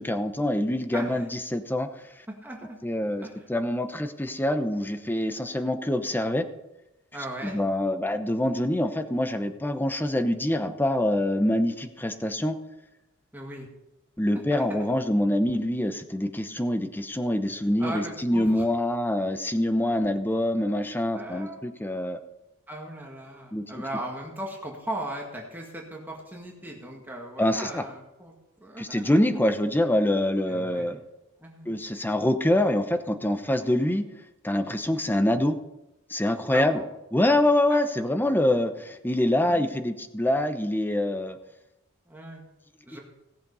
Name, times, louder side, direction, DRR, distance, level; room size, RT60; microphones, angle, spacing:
voice 1, 0.0-1.9 2.8-6.4 7.4-12.6 14.2-22.2 23.5-23.6 27.4-27.8 28.8-31.0 31.7-34.1 34.4-35.6 36.1-36.8 37.1-41.4, left 1 dB, 10° left, 8 dB, 0.9 m, -25 dB
voice 2, 0.9-1.3 2.3-2.8 3.2-3.3 7.1-7.6 13.3-13.7 14.3-14.9 17.8-18.7 21.1-21.6 22.7-29.4 30.5-31.0 31.4-31.7 36.5-36.9 37.3-37.4 37.7-37.8 39.5-39.7 42.1-42.4 42.9-43.0, right 1 dB, 10° right, -1 dB, 1.8 m, -38 dB
17.0 x 7.7 x 5.5 m, 0.91 s
head